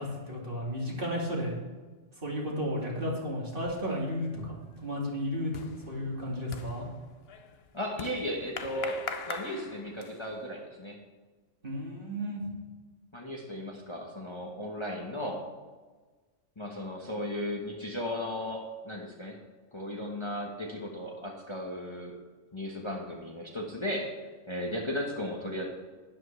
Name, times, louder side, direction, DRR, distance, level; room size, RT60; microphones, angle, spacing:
voice 1, 0.0-1.6 2.2-5.5 5.9-6.8 11.6-12.4, equal, 45° right, -3 dB, 2.6 m, -33 dB
sound 1, 3.9-4.3 4.6-10.4, left 6 dB, 60° left, 0.9 m, -42 dB
voice 2, 7.7-9.0 9.3-11.0 13.1-15.5 16.6-19.4 19.7-22.1 22.5-24.1 24.5-25.7, left 1 dB, 25° left, -1 dB, 1.3 m, -35 dB
12.0 x 10.5 x 3.3 m, 1.3 s
omnidirectional pair, 1.3 m